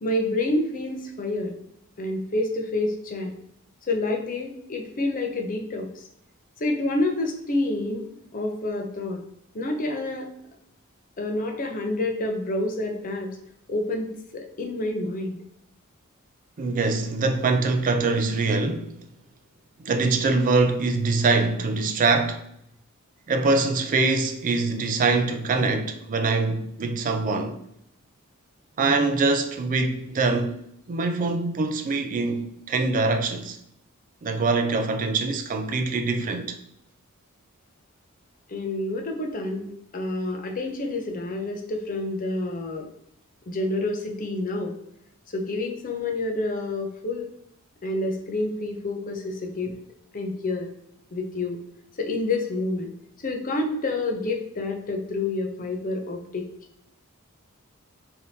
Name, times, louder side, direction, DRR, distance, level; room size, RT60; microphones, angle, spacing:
voice 1, 0.0-1.6 2.0-3.4 3.9-6.1 6.6-8.1 8.3-9.2 9.5-10.3 11.2-13.3 13.7-15.4 38.5-42.9 43.5-44.7 45.3-47.3 47.8-49.7 50.1-50.7 51.1-51.6 52.0-52.9 53.2-56.5, left 2 dB, 40° left, 0.6 m, -28 dB
voice 2, 16.6-19.1 19.8-22.4 23.3-27.6 28.8-30.6 30.9-33.6 34.2-36.5, right 3 dB, 40° right, 0.4 m, -23 dB
3.4 x 2.8 x 2.7 m
head